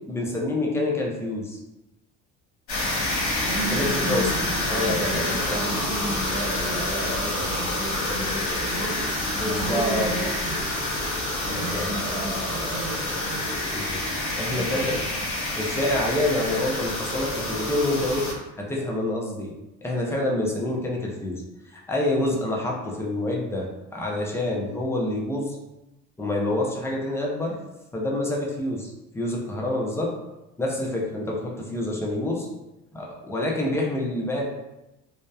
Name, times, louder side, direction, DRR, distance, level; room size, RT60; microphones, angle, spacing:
voice 1, 0.0-1.6 3.7-4.3 4.7-5.8 9.4-10.2 11.5-11.9 13.7-15.0 15.5-18.3 18.6-19.5 19.8-25.6 26.2-27.6 27.9-30.1 30.6-32.5 32.9-34.4, left 1 dB, 10° left, -2 dB, 0.5 m, -27 dB
sound 1, 2.7-18.3, left 1 dB, 85° left, 0.9 m, -28 dB
voice 2, 3.5-10.8 11.5-13.5 14.3-15.5, right 2 dB, 70° right, 1 dB, 0.6 m, -34 dB
sound 2, 5.4-10.6, left 2 dB, 55° left, 1.2 m, -43 dB
2.7 x 2.1 x 2.3 m, 0.97 s
cardioid pair, 105°, 30 cm